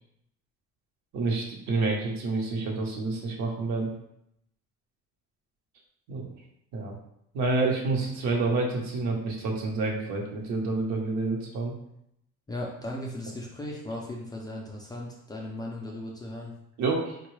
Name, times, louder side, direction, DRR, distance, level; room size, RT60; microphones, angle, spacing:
voice 1, 1.1-3.9 6.1-6.3 6.7-6.9 7.3-11.7 16.8-17.2, right 3 dB, 70° right, 0 dB, 0.9 m, -28 dB
voice 2, 12.5-16.5, left 1 dB, 15° left, -2 dB, 0.3 m, -37 dB
3.6 x 2.3 x 3.1 m, 0.76 s
cardioid pair, 155°, 29 cm